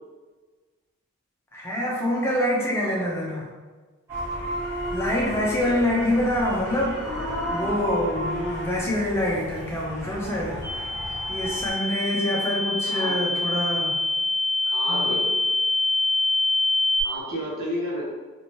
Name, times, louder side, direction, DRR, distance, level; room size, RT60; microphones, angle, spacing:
voice 1, 1.5-3.5 4.7-7.0 7.5-10.9 11.3-14.0 14.9-15.1, left 1 dB, 10° left, -4 dB, 0.5 m, -26 dB
sound 1, 4.1-11.7, equal, 10° right, 1.1 m, -33 dB
voice 2, 5.4-6.0 12.9-13.2 14.7-15.3 17.0-18.0, equal, 65° right, -5 dB, 1.0 m, -31 dB
sound 2, 10.6-17.0, left 2 dB, 30° left, 1.2 m, -25 dB
2.9 x 2.6 x 3.0 m, 1.3 s
head